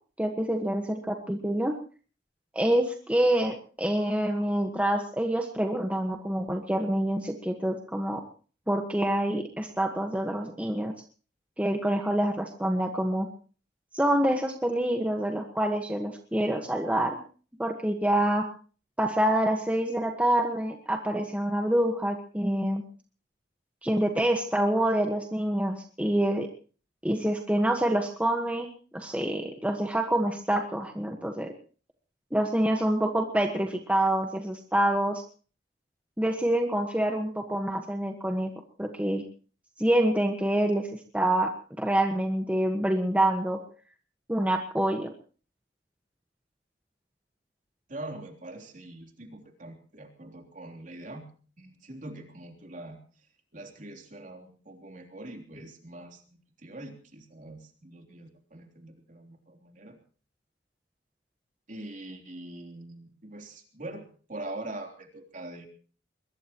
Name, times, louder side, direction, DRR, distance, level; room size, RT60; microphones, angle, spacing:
voice 1, 0.2-1.7 2.5-8.2 8.7-10.9 11.6-13.3 13.9-17.2 17.6-18.4 19.0-22.8 23.8-26.5 27.0-31.5 32.3-35.2 36.2-38.5 38.8-39.2 39.8-40.9 41.1-43.6 44.3-45.1, right 1 dB, 10° right, 3 dB, 1.4 m, -26 dB
voice 2, 47.9-51.3 51.6-53.0 53.5-60.0 61.7-65.7, right 1 dB, 45° right, 3 dB, 3.5 m, -43 dB
22.0 x 21.5 x 3.0 m, 0.40 s
head